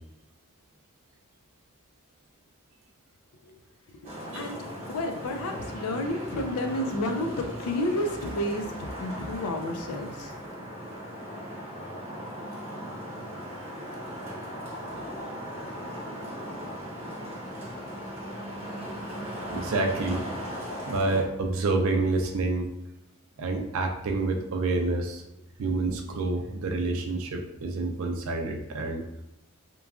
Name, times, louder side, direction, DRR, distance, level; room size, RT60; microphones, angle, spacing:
Traffic noise roadway noise, 4.0-21.2, equal, 25° right, 0.8 m, -38 dB
voice 1, 4.9-10.3, left 1 dB, 80° left, 4 dB, 0.4 m, -31 dB
voice 2, 19.5-20.2 20.9-22.7 23.4-25.2 25.6-29.0, right 3 dB, 60° right, 3 dB, 0.4 m, -28 dB
2.9 x 2.3 x 2.3 m, 0.91 s
head